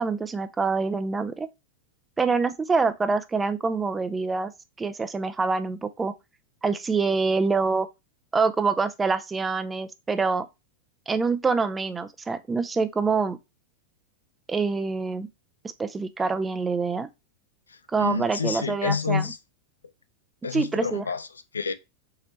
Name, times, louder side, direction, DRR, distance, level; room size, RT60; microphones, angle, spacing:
voice 1, 0.0-1.5 2.2-4.5 4.8-6.1 6.6-7.9 8.3-10.5 11.1-13.4 14.5-15.3 15.8-17.1 17.9-19.2 20.5-21.0, right 4 dB, 15° right, 0.4 m, -25 dB
voice 2, 17.7-19.4 20.4-21.7, left 5 dB, 75° left, 0.4 m, -29 dB
4.0 x 2.9 x 3.1 m
figure-of-eight pair, 90°, 0 cm